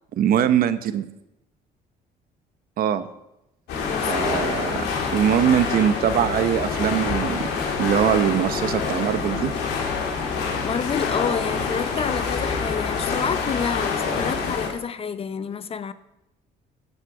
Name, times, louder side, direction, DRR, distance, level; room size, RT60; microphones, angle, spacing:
voice 1, 0.2-1.1 2.8-3.0 4.0-4.8 5.1-7.5 7.8-9.5, right 9 dB, 60° right, 0.8 m, -22 dB
sound 1, 3.7-14.7, left 5 dB, 80° left, 2.7 m, -26 dB
voice 2, 4.4-5.0 10.6-15.9, left 6 dB, 35° left, 0.6 m, -29 dB
13.5 x 8.0 x 4.8 m
cardioid pair, 110°, 17 cm